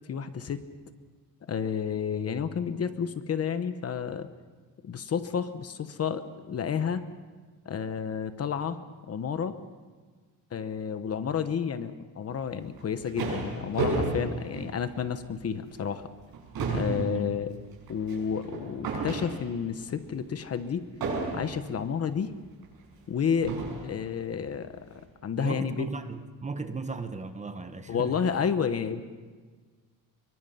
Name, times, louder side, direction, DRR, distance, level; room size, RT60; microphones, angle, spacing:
voice 1, 0.1-0.6 1.5-4.3 4.8-7.0 7.6-8.8 9.1-9.6 10.5-16.1 16.7-17.5 17.9-20.8 21.3-22.3 23.1-23.5 23.8-25.9 27.9-29.0, left 7 dB, 45° left, 10 dB, 1.1 m, -31 dB
sound 1, 12.6-15.3 15.7-15.9 16.2-19.7 21.0-21.8 22.6-22.7 23.4-24.0, right 3 dB, 80° right, 6.8 m, -33 dB
voice 2, 16.6-17.4 25.4-28.3, right 4 dB, 20° right, 9 dB, 1.0 m, -35 dB
24.0 x 23.0 x 5.7 m, 1.4 s
wide cardioid pair, 180°, 36 cm